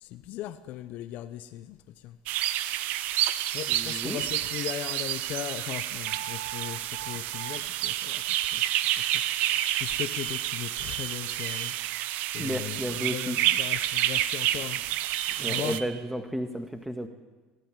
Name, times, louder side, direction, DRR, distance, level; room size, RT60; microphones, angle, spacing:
voice 1, 0.0-1.8 2.0-2.2 3.2-8.6 9.0-12.0 12.3-12.8 13.1-14.8 15.5-15.8, left 13 dB, 65° left, 1.0 m, -38 dB
sound 1, 2.3-15.8, right 13 dB, 70° right, 0.9 m, -29 dB
voice 2, 3.7-4.2 12.4-13.4 15.3-17.1, equal, 5° right, 1.8 m, -33 dB
sound 2, 6.1-7.6 8.3-8.6 8.9-9.2 9.5-9.8 10.1-10.5 10.8-11.1 11.4-11.7 15.1-15.4 15.7-15.9, right 11 dB, 85° right, 1.5 m, -39 dB
22.5 x 13.0 x 9.9 m
supercardioid pair, 90°, 3 cm